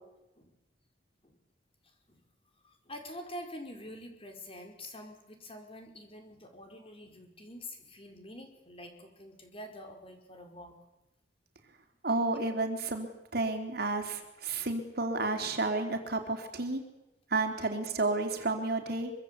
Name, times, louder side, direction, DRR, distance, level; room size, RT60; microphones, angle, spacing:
voice 1, 2.6-10.7 14.5-14.7, left 1 dB, 30° left, 4 dB, 4.9 m, -46 dB
voice 2, 12.0-16.8 17.3-19.1, right 3 dB, 60° right, 4 dB, 3.7 m, -31 dB
24.5 x 24.5 x 8.4 m, 0.95 s
head